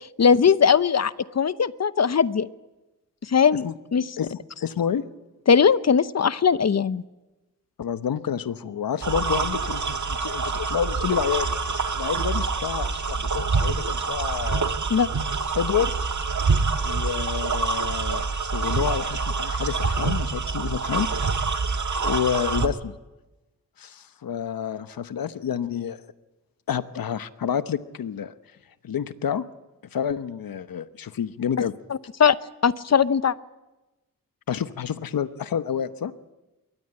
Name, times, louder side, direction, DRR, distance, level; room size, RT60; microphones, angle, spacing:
voice 1, 0.0-2.5 3.3-4.0 5.5-7.0 14.9-15.1 32.2-32.4 32.6-33.3, left 6 dB, 50° left, 15 dB, 0.8 m, -19 dB
voice 2, 4.2-5.0 7.8-14.7 15.5-15.9 16.8-21.1 22.0-23.0 23.8-26.0 26.7-28.3 28.8-29.4 29.9-31.7 34.5-36.1, left 8 dB, 85° left, 12 dB, 1.0 m, -29 dB
sound 1, 9.0-22.7, right 4 dB, 60° right, 1.6 m, -26 dB
22.5 x 18.0 x 8.9 m, 1.1 s
cardioid pair, 70°, 34 cm